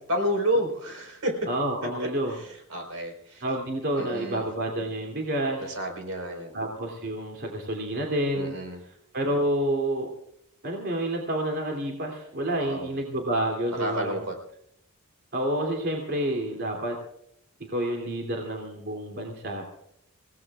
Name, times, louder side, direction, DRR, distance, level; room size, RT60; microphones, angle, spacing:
voice 1, 0.0-1.5 2.0-2.1 2.7-3.4 4.0-4.4 5.7-6.5 8.4-8.8 12.6-12.9 13.7-14.3, equal, 75° right, 2 dB, 4.4 m, -30 dB
voice 2, 1.5-2.3 3.4-5.7 6.5-8.6 9.1-10.1 10.6-14.2 15.3-17.0 17.7-19.6, right 1 dB, 50° right, 0 dB, 2.9 m, -29 dB
29.0 x 17.5 x 2.4 m, 0.72 s
head